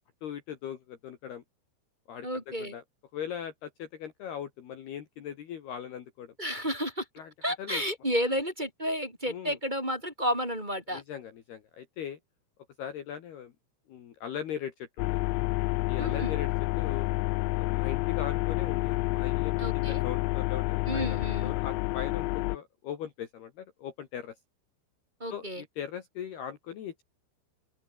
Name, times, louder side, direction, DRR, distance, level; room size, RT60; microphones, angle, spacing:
voice 1, 0.2-1.4 2.1-2.8 3.1-6.3 7.2-7.3 7.6-7.8 9.3-9.6 10.9-12.2 12.8-13.5 13.9-15.2 15.9-16.5 16.8-17.1 17.6-24.4 25.3-27.0, left 9 dB, 60° left, 3.6 m, -39 dB
voice 2, 2.2-2.7 6.4-7.0 7.4-11.0 16.0-16.3 19.6-20.0 20.9-21.5 25.2-25.6, equal, 10° right, 4.2 m, -31 dB
sound 1, 15.0-22.6, left 20 dB, 90° left, 3.6 m, -29 dB
open air
omnidirectional pair, 6.0 m